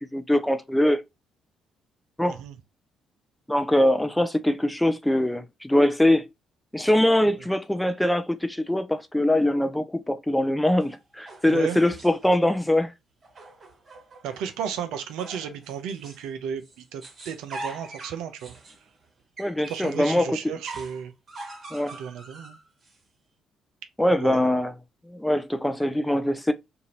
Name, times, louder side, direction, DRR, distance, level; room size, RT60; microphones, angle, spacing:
voice 1, 0.1-1.0 2.2-2.4 3.5-6.3 6.7-12.9 19.4-20.5 21.7-22.0 24.0-24.7 25.1-26.5, left 1 dB, 5° left, 0.5 m, -23 dB
voice 2, 2.3-2.6 11.5-11.8 14.2-18.6 19.7-21.1 21.9-22.6 24.2-24.4, right 8 dB, 75° right, 0.5 m, -34 dB
sound 1, 10.8-12.3 13.2-14.6 15.2-16.3 16.6-20.1 20.6-23.0, right 3 dB, 45° right, 1.2 m, -43 dB
2.7 x 2.5 x 2.9 m
hypercardioid pair, 50°, 0 cm